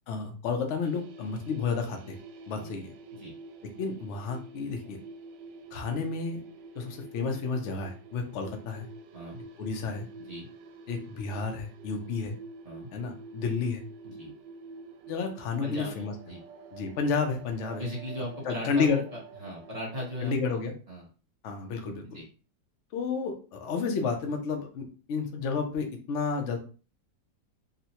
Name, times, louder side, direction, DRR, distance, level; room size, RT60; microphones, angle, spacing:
voice 1, 0.1-2.2 2.5-2.9 3.8-5.0 5.7-6.4 6.8-8.9 9.6-10.1 10.9-12.4 12.9-13.8 15.1-16.1 16.7-17.9 18.4-19.0 20.2-20.7 21.4-22.0 22.9-26.6, left 5 dB, 70° left, 4 dB, 0.6 m, -31 dB
sound 1, 0.8-20.2, right 3 dB, 75° right, 1.2 m, -48 dB
voice 2, 15.6-16.4 17.8-20.3 20.9-21.1 22.1-22.2, equal, 30° right, -4 dB, 0.7 m, -38 dB
3.9 x 2.1 x 2.8 m, 0.36 s
omnidirectional pair, 2.1 m